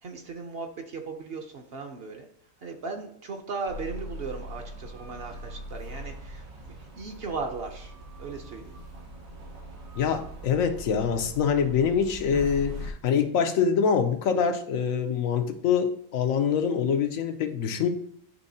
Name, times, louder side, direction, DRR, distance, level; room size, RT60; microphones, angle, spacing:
voice 1, 0.0-2.3 2.6-6.5 7.0-7.9 8.2-8.7, right 4 dB, 55° right, 4 dB, 0.8 m, -37 dB
sound 1, 3.7-12.9, equal, 90° right, 1.6 m, -41 dB
voice 2, 10.0-17.9, left 7 dB, 85° left, 7 dB, 1.1 m, -25 dB
10.5 x 3.5 x 2.7 m, 0.65 s
omnidirectional pair, 1.4 m